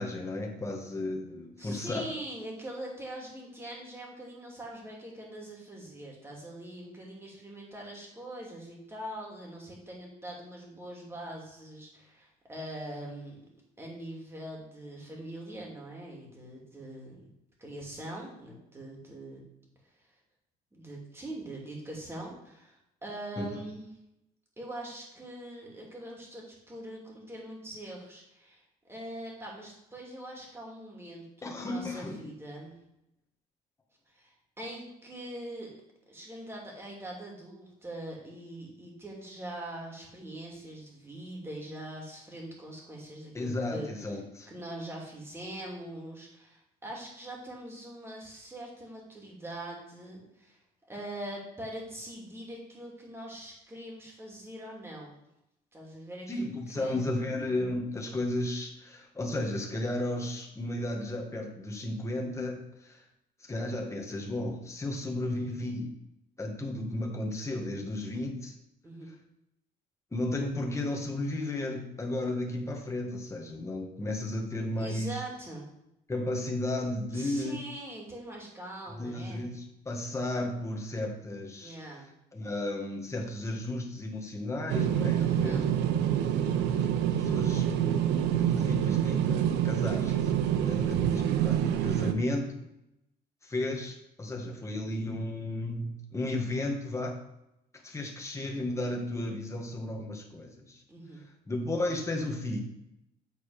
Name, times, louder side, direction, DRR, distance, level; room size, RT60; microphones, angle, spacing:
voice 1, 0.0-2.0 23.4-23.6 31.4-32.3 43.3-44.5 56.3-63.0 63.4-65.9 66.4-68.5 70.1-75.2 76.1-77.6 79.0-81.8 82.3-85.6 86.3-86.4 86.7-86.8 87.1-90.3 90.6-92.6 93.4-97.2 97.8-100.8 101.5-102.6, left 1 dB, 15° left, 1 dB, 1.6 m, -34 dB
voice 2, 1.6-13.4 13.8-17.2 17.6-19.4 20.7-23.9 24.6-32.7 34.1-35.7 36.1-43.9 44.5-55.1 55.7-56.4 56.7-57.1 68.8-69.1 74.8-75.7 77.1-79.4 81.6-82.1 85.2-85.6 100.9-101.2, right 1 dB, 15° right, -2 dB, 2.7 m, -42 dB
sound 1, 84.7-92.1, right 10 dB, 85° right, 0.7 m, -27 dB
8.8 x 4.1 x 4.9 m, 0.86 s
cardioid pair, 110°, 17 cm